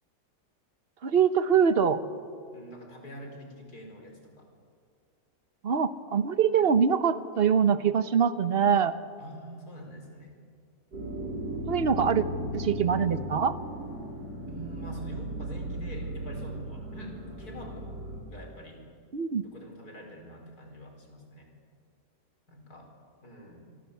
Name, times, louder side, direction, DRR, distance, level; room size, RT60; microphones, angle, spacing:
voice 1, 1.0-2.0 5.6-9.0 11.7-12.2 12.5-13.6 19.1-19.4, right 7 dB, 40° right, 11 dB, 1.1 m, -24 dB
voice 2, 2.5-4.5 9.2-10.3 14.5-17.9 18.3-18.8 19.4-21.5 22.5-22.9 23.2-23.8, equal, 60° left, 2 dB, 5.3 m, -44 dB
sound 1, 10.9-18.2, equal, 80° right, 6.3 m, -36 dB
27.5 x 23.5 x 8.3 m, 2.2 s
omnidirectional pair, 1.8 m